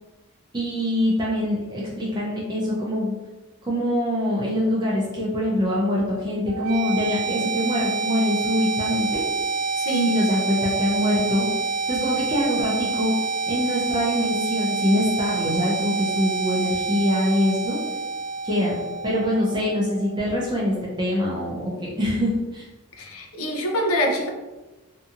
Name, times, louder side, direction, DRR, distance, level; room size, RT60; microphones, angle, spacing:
voice 1, 0.5-3.1 3.6-9.2 10.1-11.5 11.9-13.1 13.5-17.8 18.4-22.7, left 1 dB, 20° right, -5 dB, 0.5 m, -24 dB
sound 1, 6.5-20.4, right 4 dB, 85° right, 0.4 m, -27 dB
voice 2, 9.8-10.2 23.0-24.3, equal, 70° left, 1 dB, 0.5 m, -24 dB
2.6 x 2.6 x 2.4 m, 1.1 s
head